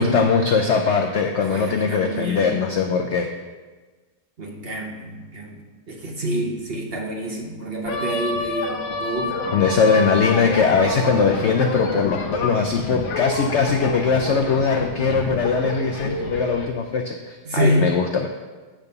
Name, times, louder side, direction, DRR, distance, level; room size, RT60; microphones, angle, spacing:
voice 1, 0.0-3.3 9.5-18.3, left 5 dB, 85° left, 4 dB, 0.6 m, -21 dB
voice 2, 1.4-2.5 4.4-5.6 5.9-9.4 17.4-17.9, right 1 dB, 45° right, 1 dB, 0.9 m, -26 dB
sound 1, 7.8-16.7, left 3 dB, 55° left, 0.9 m, -28 dB
10.0 x 3.5 x 6.6 m, 1.3 s
omnidirectional pair, 1.9 m